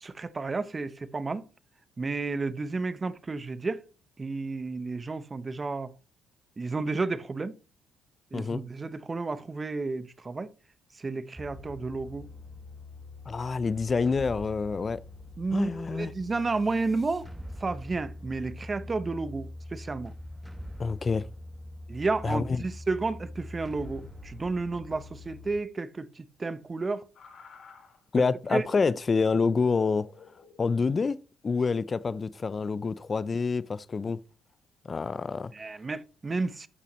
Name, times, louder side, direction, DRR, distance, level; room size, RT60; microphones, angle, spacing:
voice 1, 0.0-1.4 2.0-3.8 4.2-5.9 6.6-7.6 8.3-10.5 11.0-12.3 15.4-17.3 17.6-20.1 21.9-27.1 28.5-28.6 35.5-36.7, right 3 dB, 30° right, 0.8 m, -32 dB
sound 1, 11.4-25.6, left 1 dB, 10° right, 1.3 m, -44 dB
voice 2, 13.3-15.0 15.5-16.1 20.8-21.3 22.2-22.6 28.1-30.1 30.6-31.2 31.4-34.2 34.8-35.5, left 4 dB, 40° left, 0.5 m, -27 dB
sound 2, 27.2-28.0 28.6-30.7 31.9-32.2, left 4 dB, 65° left, 2.2 m, -52 dB
12.5 x 5.7 x 3.1 m
supercardioid pair, 60°, 0 cm